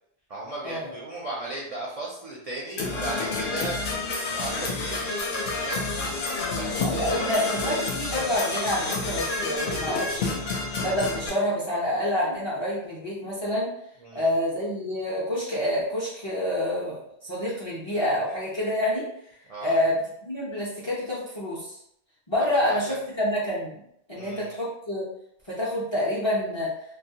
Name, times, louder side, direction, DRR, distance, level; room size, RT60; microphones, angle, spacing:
voice 1, 0.3-5.9 6.5-7.4 14.0-14.3 19.5-19.8 22.5-22.8 24.2-24.5, right 2 dB, 60° right, -4 dB, 0.4 m, -36 dB
Percussion / Brass instrument, 2.8-11.3, left 3 dB, 70° left, 0.8 m, -29 dB
voice 2, 6.8-10.4 10.8-13.7 14.1-19.1 19.6-21.8 22.3-23.8 24.1-25.0 25.5-26.7, left 1 dB, 40° left, -7 dB, 0.4 m, -27 dB
2.2 x 2.0 x 2.7 m, 0.74 s
omnidirectional pair, 1.1 m